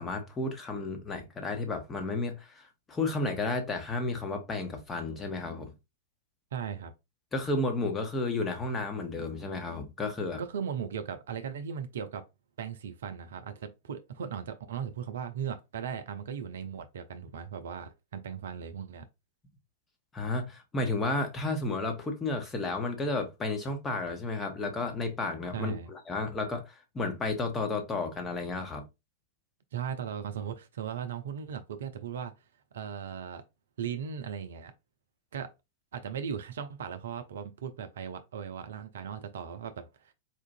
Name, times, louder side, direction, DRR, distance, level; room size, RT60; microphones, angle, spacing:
voice 1, 0.0-5.7 7.3-10.4 20.1-28.8, left 3 dB, 15° left, 1.0 m, -32 dB
voice 2, 6.5-6.9 10.4-12.2 12.6-19.1 25.5-25.9 29.7-32.3 32.7-33.4 33.8-34.7 35.3-35.5 35.9-40.1, right 7 dB, 60° right, 0.5 m, -37 dB
4.4 x 2.5 x 2.6 m
figure-of-eight pair, 95°, 0 cm